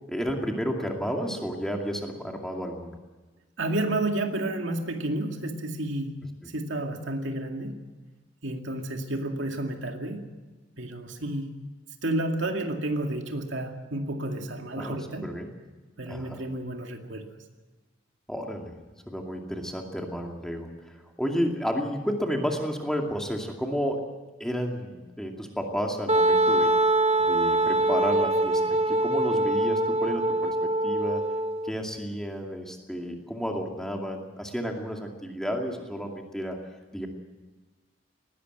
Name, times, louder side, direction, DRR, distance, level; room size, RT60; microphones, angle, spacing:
voice 1, 0.1-3.0 14.7-15.0 15.2-15.5 16.1-16.4 18.3-18.7 19.1-24.1 24.4-26.7 27.2-31.3 31.6-36.6 36.9-37.1, equal, 5° left, 1 dB, 2.3 m, -31 dB
voice 2, 3.6-7.8 8.4-10.3 10.8-11.5 12.0-15.3 16.0-17.4, right 1 dB, 70° right, 4 dB, 2.3 m, -31 dB
Wind instrument woodwind instrument, 26.1-31.7, right 2 dB, 30° right, 1.4 m, -23 dB
20.0 x 17.0 x 8.0 m, 1.2 s
head